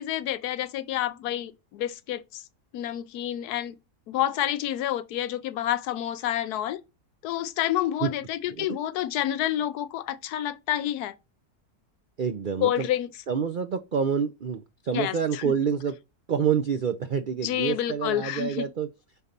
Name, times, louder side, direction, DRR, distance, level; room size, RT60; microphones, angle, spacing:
voice 1, 0.0-2.4 2.7-3.8 4.1-6.8 7.2-11.1 12.6-13.1 14.9-15.4 17.4-18.7, left 12 dB, 80° left, 1.1 m, -29 dB
voice 2, 12.2-12.9 13.3-15.9 16.3-18.9, right 7 dB, 75° right, 0.4 m, -27 dB
6.3 x 4.1 x 5.2 m
omnidirectional pair, 1.6 m